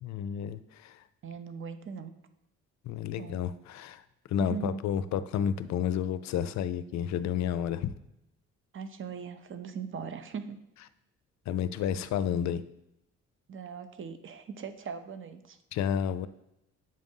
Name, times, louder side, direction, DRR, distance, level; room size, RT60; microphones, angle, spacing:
voice 1, 0.0-1.0 2.8-4.0 4.3-7.9 11.5-12.6 15.7-16.3, left 9 dB, 65° left, 14 dB, 0.4 m, -31 dB
voice 2, 1.2-2.1 3.2-3.4 4.4-4.8 8.7-10.6 13.5-15.6, right 6 dB, 40° right, 10 dB, 0.7 m, -39 dB
7.6 x 2.6 x 5.3 m, 0.84 s
cardioid pair, 90°, 30 cm